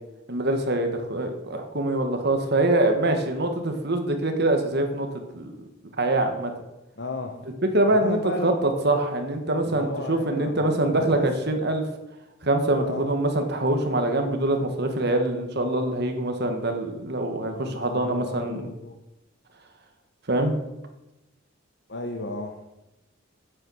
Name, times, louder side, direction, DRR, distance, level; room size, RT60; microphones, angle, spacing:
voice 1, 0.3-5.1 5.3-5.6 6.0-6.5 7.7-11.8 12.4-18.7 20.3-20.5, right 1 dB, 55° right, 5 dB, 1.6 m, -24 dB
voice 2, 7.0-7.5 7.9-8.6 9.6-11.3 12.8-13.1 17.5-19.0 21.9-22.6, left 2 dB, 55° left, 4 dB, 1.0 m, -34 dB
9.7 x 8.5 x 6.3 m, 0.95 s
head